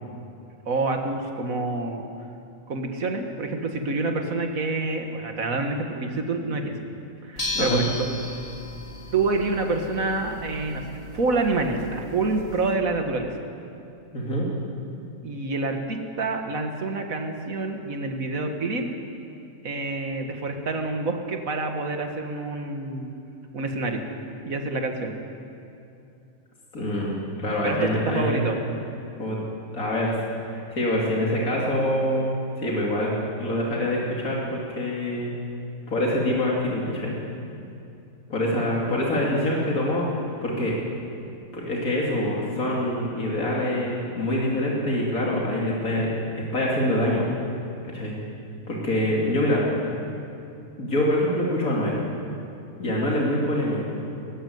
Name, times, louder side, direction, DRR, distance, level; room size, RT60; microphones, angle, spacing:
voice 1, 0.7-2.0 2.7-6.7 7.2-8.1 9.1-10.8 11.1-13.4 15.2-18.8 19.6-23.1 23.5-24.0 24.4-25.1 27.6-28.6, right 3 dB, 80° right, 4 dB, 2.2 m, -27 dB
sound 1, 7.4-12.7, left 2 dB, 40° left, 2.4 m, -36 dB
voice 2, 14.1-14.5 26.7-28.5 29.2-29.4 29.7-35.3 35.9-37.1 38.3-40.7 41.5-46.1 46.3-47.3 47.8-48.1 48.7-49.7 50.8-52.0 52.8-53.9, left 1 dB, 85° left, -4 dB, 3.2 m, -25 dB
19.5 x 15.5 x 9.6 m, 2.7 s
omnidirectional pair, 1.4 m